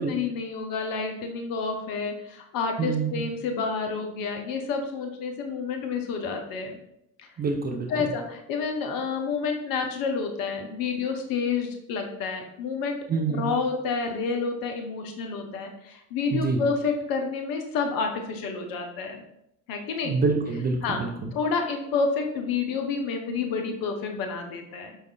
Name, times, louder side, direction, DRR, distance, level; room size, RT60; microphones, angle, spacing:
voice 1, 0.0-6.8 7.2-7.3 7.9-13.0 13.3-19.2 19.7-20.2 20.8-21.0 21.3-25.0, left 5 dB, 55° left, 4 dB, 0.6 m, -29 dB
voice 2, 2.8-3.2 7.4-7.9 13.1-13.5 16.3-16.6 20.1-21.3, right 4 dB, 25° right, 2 dB, 0.4 m, -26 dB
4.7 x 2.3 x 2.2 m, 0.80 s
figure-of-eight pair, 45°, 42 cm